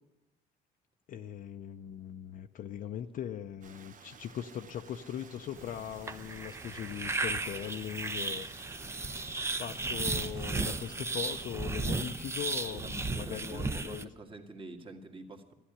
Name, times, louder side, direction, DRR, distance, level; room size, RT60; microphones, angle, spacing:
voice 1, 1.1-8.5 9.6-14.1, left 10 dB, 55° left, 5 dB, 0.6 m, -40 dB
Stream, 3.6-11.5, right 6 dB, 50° right, 1.2 m, -54 dB
sound 1, 5.6-14.0, right 3 dB, 15° right, 0.7 m, -35 dB
voice 2, 12.7-15.5, right 2 dB, 30° right, 4 dB, 1.9 m, -46 dB
13.0 x 11.0 x 10.0 m, 0.95 s
cardioid pair, 110°, 17 cm